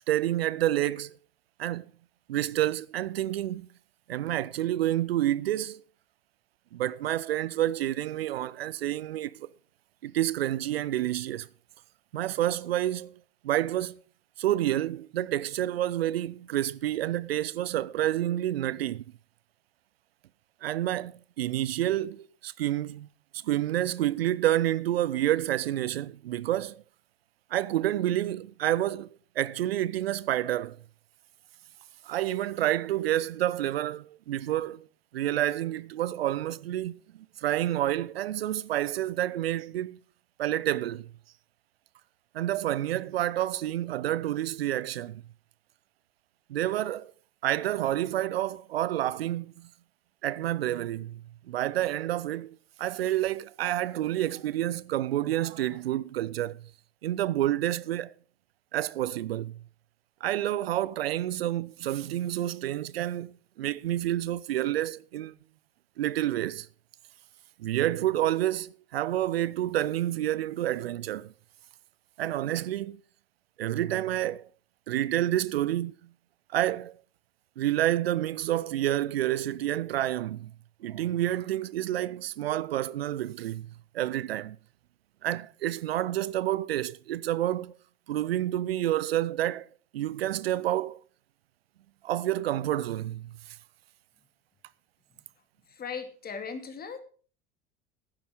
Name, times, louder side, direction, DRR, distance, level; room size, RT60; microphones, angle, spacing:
voice 1, 0.1-1.2 1.6-1.9 2.3-3.7 4.1-5.8 6.7-9.5 10.0-11.5 12.1-13.2 13.4-14.0 14.4-19.0 20.6-23.1 23.4-26.8 27.5-29.1 29.4-30.8 32.0-34.9 35.1-40.0 40.4-41.1 42.3-45.2 46.5-47.1 47.4-49.7 50.2-56.6 57.0-58.1 58.7-59.6 60.2-65.3 66.0-66.7 67.6-71.3 72.2-73.0 73.6-74.5 74.9-75.9 76.5-77.0 77.6-80.5 80.8-83.7 83.9-84.6 85.2-87.8 88.1-89.7 89.9-91.0 92.0-93.6, right 13 dB, 80° right, 0.5 m, -29 dB
voice 2, 95.7-97.0, left 6 dB, 30° left, 2.2 m, -38 dB
11.0 x 9.7 x 5.0 m
figure-of-eight pair, 70°, 30 cm